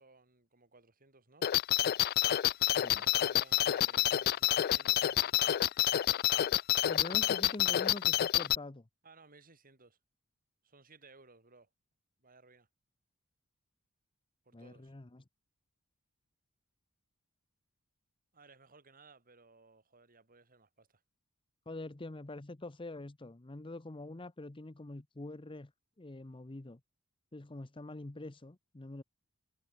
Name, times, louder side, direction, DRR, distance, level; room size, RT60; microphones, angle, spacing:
voice 1, 0.0-1.5 2.9-5.6 9.0-10.0 10.6-11.7 12.2-12.7 14.5-14.9 18.3-21.0, right 3 dB, 40° right, 5.5 m, -61 dB
sound 1, 1.4-8.6, left 12 dB, 45° left, 0.3 m, -28 dB
voice 2, 2.7-3.0 6.9-8.9 14.5-15.2 21.7-25.7 26.0-26.8 27.3-29.0, left 2 dB, 25° left, 0.8 m, -45 dB
head